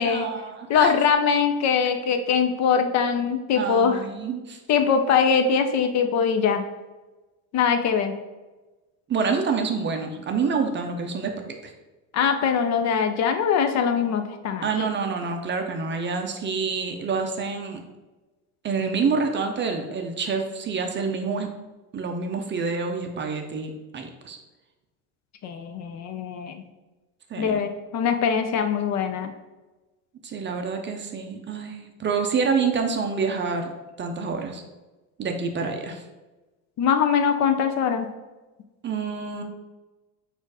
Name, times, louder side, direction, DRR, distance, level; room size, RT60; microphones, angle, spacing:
voice 1, 0.0-0.9 3.6-4.6 9.1-11.3 11.6-11.7 14.6-17.8 18.6-21.5 21.9-24.4 27.3-27.7 30.2-33.7 34.0-34.6 35.2-36.0 38.8-39.4, right 5 dB, 25° right, 4 dB, 0.5 m, -27 dB
voice 2, 0.7-4.1 4.7-6.6 7.5-8.1 12.1-14.9 25.4-26.6 27.4-29.3 36.8-38.1, left 6 dB, 45° left, 7 dB, 0.5 m, -22 dB
4.3 x 2.6 x 4.7 m, 1.1 s
supercardioid pair, 100°, 41 cm